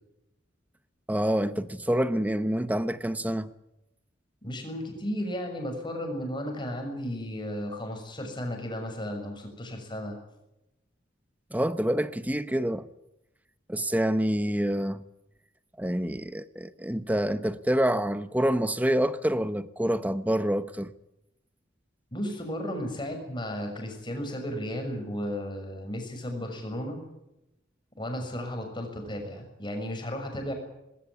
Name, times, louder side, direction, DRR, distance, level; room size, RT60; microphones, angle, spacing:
voice 1, 1.1-3.5 11.5-12.9 13.7-15.0 15.8-20.9, equal, 10° right, 0.9 m, -27 dB
voice 2, 4.4-10.2 22.1-27.0 28.0-30.5, equal, 25° left, 6.6 m, -34 dB
20.0 x 17.5 x 9.6 m
head